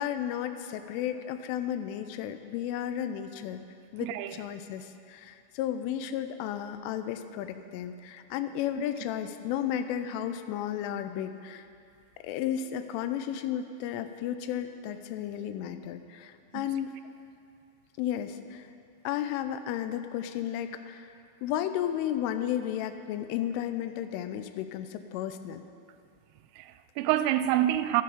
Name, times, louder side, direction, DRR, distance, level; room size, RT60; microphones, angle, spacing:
voice 1, 0.0-3.6 3.9-11.7 12.2-17.0 18.0-18.7 19.0-21.1 21.4-25.6, left 10 dB, 85° left, 9 dB, 3.1 m, -33 dB
voice 2, 4.0-4.4 16.5-16.7 26.6-28.0, right 13 dB, 90° right, 11 dB, 3.1 m, -27 dB
12.5 x 12.0 x 5.0 m, 2.5 s
omnidirectional pair, 5.7 m